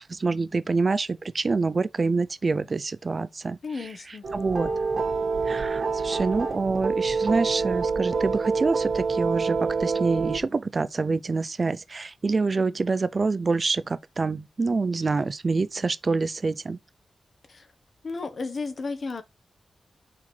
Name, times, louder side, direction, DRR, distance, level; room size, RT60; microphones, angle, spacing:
voice 1, 0.0-4.7 5.5-16.8, right 4 dB, 35° right, 0.4 m, -26 dB
voice 2, 3.6-4.2 17.5-17.7 18.0-19.2, left 4 dB, 50° left, 1.0 m, -33 dB
sound 1, 4.2-10.4, right 4 dB, 70° right, 1.4 m, -27 dB
5.9 x 4.3 x 4.4 m
wide cardioid pair, 155°, 0 cm